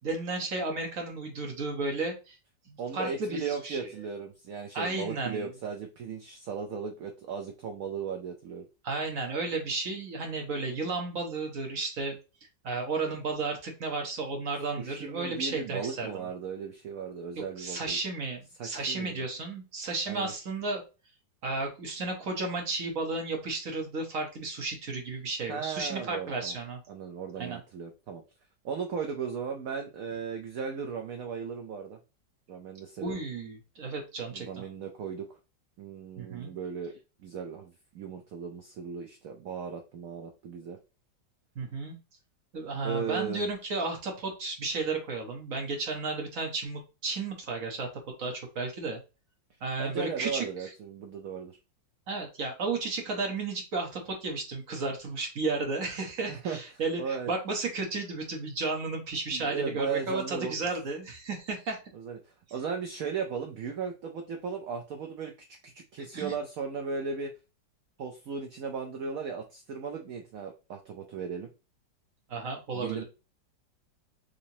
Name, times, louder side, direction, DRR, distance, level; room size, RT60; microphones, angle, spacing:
voice 1, 0.0-2.4 2.7-3.9 4.7-5.5 8.8-12.2 12.6-16.3 17.6-20.8 21.4-26.8 27.4-27.6 33.0-34.6 36.2-36.5 41.5-42.0 42.5-47.9 48.2-49.0 49.6-50.7 52.1-61.8 66.0-66.3 72.3-73.0, right 3 dB, 50° right, 2 dB, 1.2 m, -33 dB
voice 2, 2.8-8.6 14.8-18.0 18.6-19.2 20.1-20.3 25.5-26.6 26.9-28.2 28.6-32.0 32.5-33.2 34.3-35.3 35.8-36.9 37.2-40.8 42.8-43.5 49.8-51.6 56.3-56.6 57.0-57.3 59.3-60.5 61.9-62.2 62.5-65.3 65.6-67.3 68.0-71.5 72.7-73.0, right 6 dB, 70° right, 4 dB, 0.8 m, -36 dB
3.9 x 3.1 x 2.6 m, 0.30 s
omnidirectional pair, 2.0 m